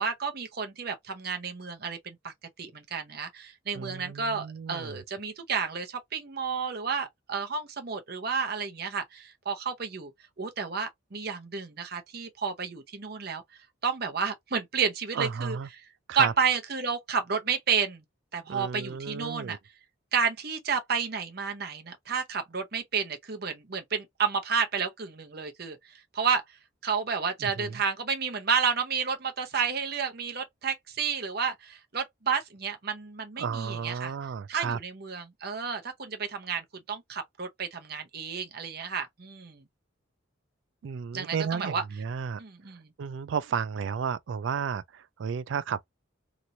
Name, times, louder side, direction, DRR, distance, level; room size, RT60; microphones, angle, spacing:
voice 1, 0.0-10.1 10.4-13.4 13.8-15.6 16.1-18.0 18.3-19.6 20.1-25.8 26.1-26.4 26.8-34.1 34.5-39.6 41.1-41.8 42.4-42.9, right 6 dB, 50° right, 0.8 m, -31 dB
voice 2, 3.7-5.0 15.1-15.7 16.1-16.3 18.5-19.6 27.4-27.8 33.4-34.8 40.8-42.4 43.0-45.8, right 6 dB, 65° right, 0.3 m, -33 dB
3.0 x 2.5 x 2.7 m
head